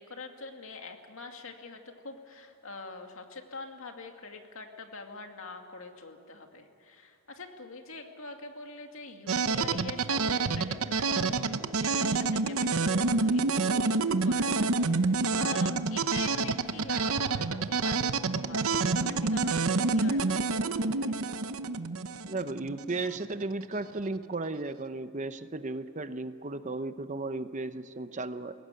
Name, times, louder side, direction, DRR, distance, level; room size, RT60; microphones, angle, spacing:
voice 1, 0.0-21.2, left 3 dB, 70° left, 4 dB, 2.3 m, -44 dB
sound 1, 9.3-23.2, right 3 dB, 80° right, 0.8 m, -28 dB
voice 2, 22.3-28.5, right 2 dB, 35° right, 11 dB, 0.8 m, -35 dB
22.0 x 17.5 x 9.2 m, 2.7 s
head